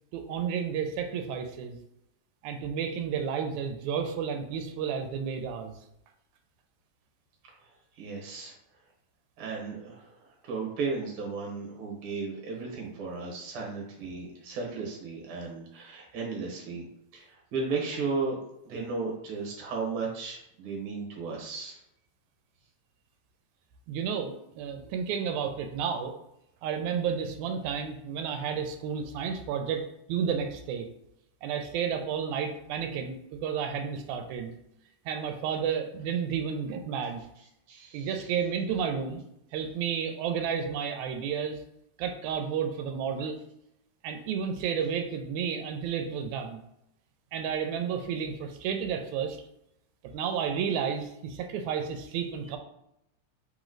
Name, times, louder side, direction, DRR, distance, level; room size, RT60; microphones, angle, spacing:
voice 1, 0.1-1.8 2.4-5.7 23.9-26.1 26.6-30.9 31.4-34.5 35.1-37.2 37.9-39.2 39.5-41.6 42.0-43.4 44.0-46.6 47.3-49.4 50.1-52.6, right 7 dB, 90° right, 5 dB, 2.0 m, -31 dB
voice 2, 8.0-8.5 9.4-10.1 10.4-16.9 17.1-18.4 18.6-21.8 37.7-38.3, right 4 dB, 55° right, -1 dB, 1.8 m, -35 dB
4.4 x 3.0 x 3.8 m, 0.80 s
omnidirectional pair, 3.3 m